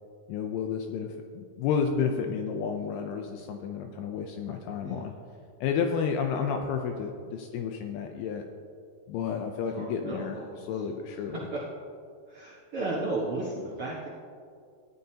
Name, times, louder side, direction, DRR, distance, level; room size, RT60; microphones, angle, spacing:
voice 1, 0.3-5.1 5.6-8.4 9.1-11.5, left 6 dB, 80° left, 4 dB, 2.5 m, -31 dB
voice 2, 9.7-10.8 11.1-11.6 12.3-14.1, right 2 dB, 60° right, -5 dB, 1.5 m, -35 dB
17.0 x 11.5 x 2.8 m, 2.3 s
omnidirectional pair, 4.7 m